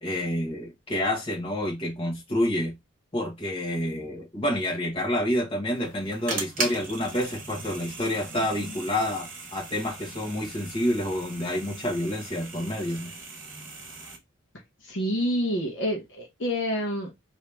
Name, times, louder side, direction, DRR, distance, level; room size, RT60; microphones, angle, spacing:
voice 1, 0.0-2.7 3.1-13.1, left 1 dB, 25° left, 1.2 m, -28 dB
sound 1, 5.7-14.2, right 3 dB, 40° right, 1.2 m, -38 dB
voice 2, 14.8-17.1, equal, 55° left, 0.9 m, -28 dB
3.0 x 2.7 x 3.3 m
head